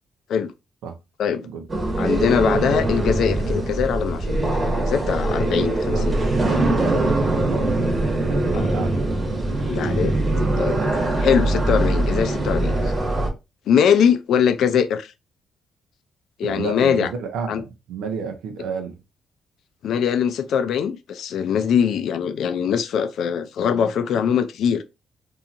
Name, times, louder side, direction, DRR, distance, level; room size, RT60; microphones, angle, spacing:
sound 1, 1.7-13.3, right 2 dB, 30° right, 1.1 m, -22 dB
voice 1, 2.0-4.5 4.9-6.2 8.5-8.7 9.7-10.1 10.6-10.8 11.1-12.7 13.7-15.1 16.4-17.1 17.5-17.6 19.8-24.8, left 7 dB, 70° left, 0.4 m, -22 dB
voice 2, 5.9-9.0 16.4-19.0, right 6 dB, 85° right, 0.7 m, -31 dB
2.8 x 2.7 x 2.4 m
cardioid pair, 90°, 0 cm